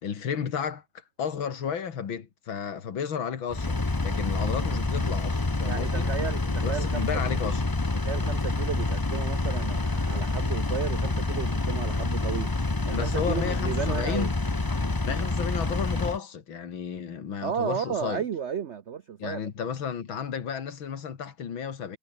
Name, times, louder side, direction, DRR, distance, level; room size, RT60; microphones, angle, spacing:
voice 1, 0.0-3.8 4.0-6.1 6.4-7.6 12.9-14.3 15.0-18.2 19.2-22.0, left 7 dB, 75° left, 2.7 m, -33 dB
Engine, 3.5-16.2, left 3 dB, 25° left, 0.5 m, -27 dB
voice 2, 5.6-7.5 7.9-12.5 12.8-14.3 17.4-19.7, right 8 dB, 85° right, 0.6 m, -33 dB
omnidirectional pair, 2.2 m